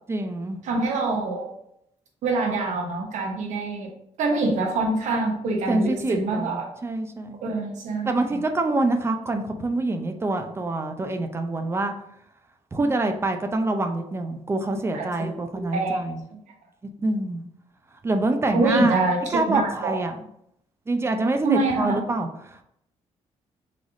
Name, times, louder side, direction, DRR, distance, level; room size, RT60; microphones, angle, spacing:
voice 1, 0.1-0.6 5.7-7.4 8.1-11.9 12.7-16.2 17.0-17.4 18.0-19.0 19.3-20.2 20.9-22.6, right 2 dB, 20° right, 5 dB, 0.5 m, -26 dB
voice 2, 0.6-1.5 2.2-3.9 4.2-6.7 7.4-8.4 14.9-15.3 15.7-16.0 16.3-16.4 18.5-20.0 21.4-22.0, right 3 dB, 85° right, 1 dB, 1.1 m, -25 dB
3.9 x 3.3 x 3.9 m, 0.74 s
cardioid pair, 120°, 12 cm